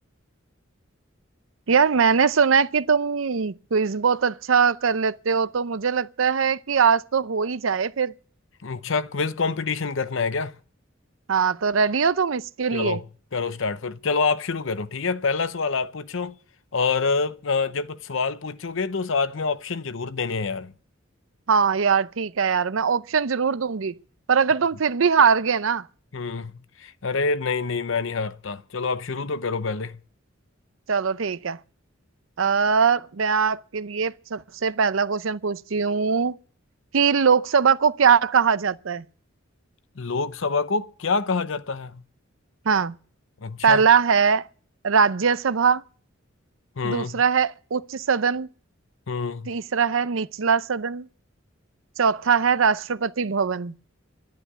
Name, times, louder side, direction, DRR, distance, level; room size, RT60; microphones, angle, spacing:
voice 1, 1.7-8.1 11.3-13.0 21.5-24.0 24.3-25.8 30.9-31.6 32.4-36.4 36.9-39.0 42.7-42.9 43.6-44.5 44.8-45.8 46.8-48.5 49.5-51.1 52.0-53.7, right 6 dB, 75° right, 0.6 m, -21 dB
voice 2, 8.6-10.5 12.7-13.0 13.3-16.3 16.7-20.7 26.1-26.5 26.8-30.0 40.0-42.0 43.4-43.8 46.8-47.2 49.1-49.5, left 4 dB, 70° left, 0.7 m, -26 dB
11.5 x 10.5 x 9.8 m
head